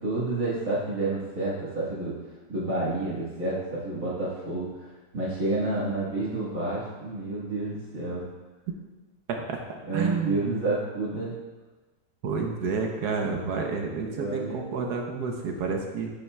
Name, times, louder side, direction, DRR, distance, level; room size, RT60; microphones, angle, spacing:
voice 1, 0.0-2.2 2.5-4.9 5.1-8.2 9.8-11.3 14.1-14.6, right 2 dB, 50° right, -9 dB, 1.9 m, -29 dB
voice 2, 9.9-10.5 12.2-16.1, right 5 dB, 65° right, 2 dB, 1.3 m, -30 dB
10.5 x 5.5 x 2.2 m, 1.2 s
omnidirectional pair, 2.0 m